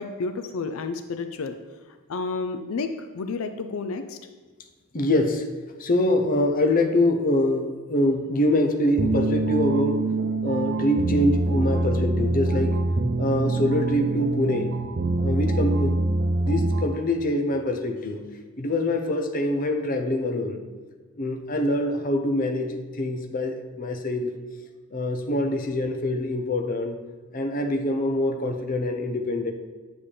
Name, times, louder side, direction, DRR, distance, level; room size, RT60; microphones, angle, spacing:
voice 1, 0.0-1.6 2.1-4.2, left 4 dB, 85° left, 9 dB, 0.5 m, -31 dB
voice 2, 4.9-5.5 5.8-10.1 10.4-12.8 13.2-14.7 15.2-16.0 16.4-18.2 18.6-20.6 21.2-24.3 24.9-27.0 27.3-29.5, left 1 dB, 40° left, 5 dB, 0.7 m, -24 dB
sound 1, 9.0-17.1, right 2 dB, 55° right, 0.6 m, -25 dB
9.8 x 7.0 x 3.4 m, 1.4 s
head